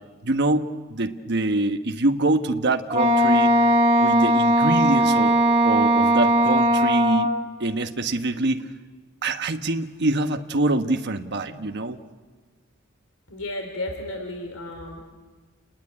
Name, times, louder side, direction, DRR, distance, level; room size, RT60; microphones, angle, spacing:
voice 1, 0.2-3.5 4.0-5.4 5.6-7.3 7.6-8.6 9.2-12.0, right 2 dB, 55° right, 6 dB, 1.2 m, -24 dB
Wind instrument woodwind instrument, 2.9-7.4, equal, 30° right, 2.0 m, -19 dB
voice 2, 13.3-15.1, left 1 dB, 90° left, 3 dB, 3.7 m, -33 dB
30.0 x 19.5 x 9.8 m, 1.4 s
head